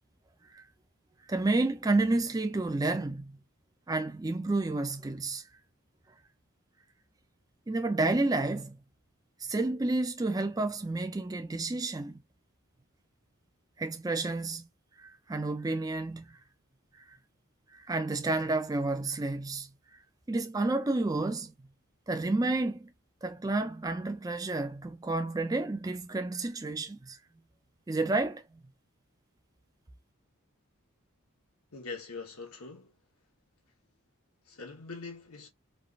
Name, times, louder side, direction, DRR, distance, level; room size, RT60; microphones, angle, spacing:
voice 1, 1.3-3.3 3.9-5.4 7.7-8.8 9.4-12.2 13.8-14.6 15.0-16.4 17.7-19.7 20.3-21.5 22.1-22.9 23.2-27.2 27.9-28.4, right 2 dB, 15° right, 0.4 m, -30 dB
voice 2, 31.7-32.9 34.5-35.5, left 4 dB, 90° left, 1.1 m, -43 dB
3.2 x 2.5 x 2.4 m
head